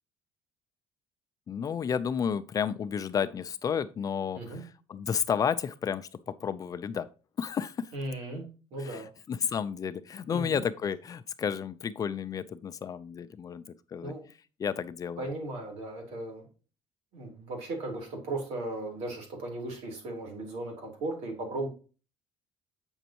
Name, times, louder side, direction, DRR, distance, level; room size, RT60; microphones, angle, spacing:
voice 1, 1.5-7.1 7.4-7.9 8.8-13.6 13.9-14.1 14.6-15.3, left 7 dB, 35° left, 0.5 m, -32 dB
voice 2, 7.9-8.5 8.7-9.1 10.3-10.6 14.0-14.2 15.2-16.5 17.1-21.7, right 2 dB, 75° right, 3.5 m, -36 dB
8.0 x 6.1 x 2.9 m
cardioid pair, 130°, 11 cm